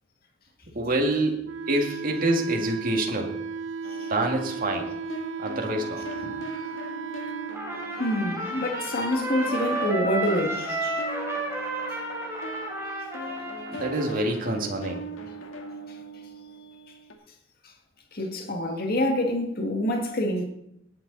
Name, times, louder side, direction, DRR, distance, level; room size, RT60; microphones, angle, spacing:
voice 1, 0.7-3.4 4.1-4.9 5.4-6.4 13.7-15.0, right 1 dB, 45° right, 2.1 m, -27 dB
Wind instrument woodwind instrument, 1.4-7.6, right 5 dB, 75° right, 0.7 m, -35 dB
sound 1, 3.8-9.1 9.4-17.1, right 2 dB, 90° left, 2.0 m, -40 dB
Trumpet, 7.5-14.3, right 2 dB, 15° right, 3.9 m, -32 dB
voice 2, 7.9-11.0 18.1-20.4, left 1 dB, 50° left, 2.1 m, -27 dB
18.0 x 9.7 x 4.1 m
head